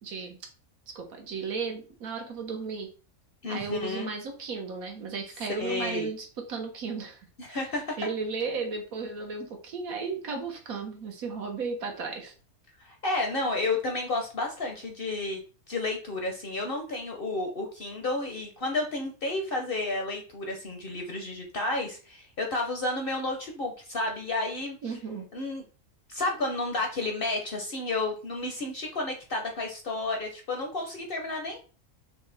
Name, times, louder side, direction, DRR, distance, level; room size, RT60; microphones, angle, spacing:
voice 1, 0.0-0.4 0.9-2.9 3.5-7.7 8.0-12.3 24.8-25.2, right 4 dB, 75° right, 3 dB, 1.4 m, -35 dB
voice 2, 3.4-4.1 5.6-6.1 7.4-8.0 12.8-15.4 15.7-24.8 25.3-25.6 26.1-31.6, left 2 dB, 50° left, 2 dB, 0.8 m, -31 dB
6.1 x 2.2 x 3.3 m, 0.36 s
omnidirectional pair, 1.5 m